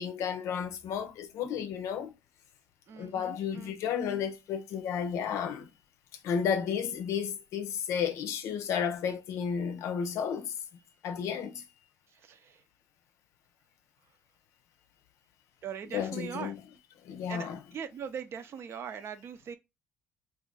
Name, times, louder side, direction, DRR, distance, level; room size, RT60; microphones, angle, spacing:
voice 1, 0.0-2.1 3.0-5.7 6.2-10.5 11.0-11.6 15.9-16.6 17.0-17.6, left 7 dB, 75° left, 0.6 m, -32 dB
voice 2, 2.9-3.8 12.1-12.6 15.6-16.5 17.3-19.6, right 7 dB, 55° right, 0.5 m, -41 dB
2.5 x 2.5 x 3.8 m
cardioid pair, 90°, 5 cm